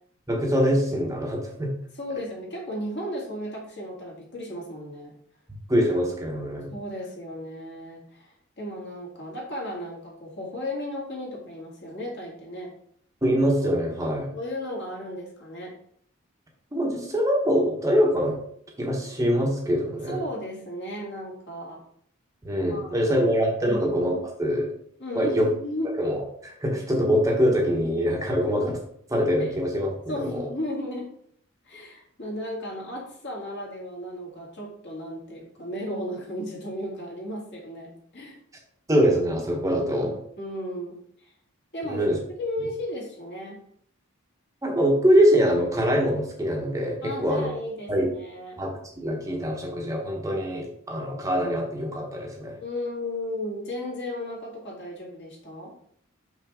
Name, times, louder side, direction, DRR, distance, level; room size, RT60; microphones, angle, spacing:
voice 1, 0.3-1.7 5.7-6.7 13.2-14.3 16.7-18.4 18.8-20.2 22.4-24.7 25.1-25.5 26.0-28.7 29.1-30.5 38.9-40.1 41.8-42.2 44.6-47.5 47.9-48.1 48.6-52.6, equal, 15° right, 0 dB, 1.0 m, -24 dB
voice 2, 2.0-5.1 6.7-12.7 14.3-15.7 20.1-21.8 22.7-23.3 23.6-23.9 25.0-26.0 29.4-29.5 30.1-31.1 31.6-38.4 39.7-39.9 40.4-41.0 41.7-42.0 42.4-43.6 47.0-48.6 52.6-55.7, left 1 dB, 55° left, -3 dB, 2.3 m, -35 dB
5.8 x 5.7 x 3.6 m, 0.66 s
head